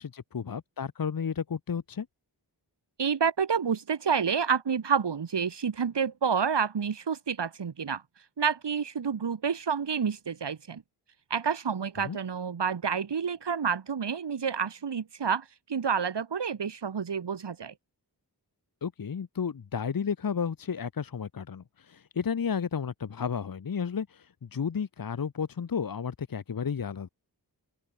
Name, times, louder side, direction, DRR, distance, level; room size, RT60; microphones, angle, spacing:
voice 1, 0.0-2.1 12.0-12.2 18.8-27.1, left 6 dB, 55° left, 1.0 m, -32 dB
voice 2, 3.0-8.0 8.4-10.8 11.3-17.7, right 6 dB, 80° right, 1.8 m, -29 dB
open air
wide cardioid pair, 75°, 41 cm